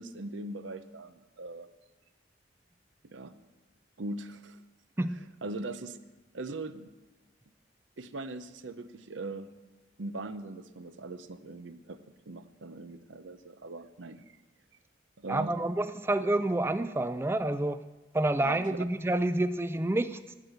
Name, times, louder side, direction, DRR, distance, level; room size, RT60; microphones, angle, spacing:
voice 1, 0.0-1.7 3.0-3.3 4.0-4.6 5.1-6.0 6.3-6.9 8.0-9.5 10.0-12.0 12.3-14.3 15.2-15.5 18.4-18.6, right 2 dB, 85° right, 12 dB, 0.8 m, -40 dB
voice 2, 15.3-17.8 18.1-20.3, right 2 dB, 15° right, 12 dB, 0.3 m, -28 dB
12.0 x 9.1 x 7.9 m, 1.2 s
head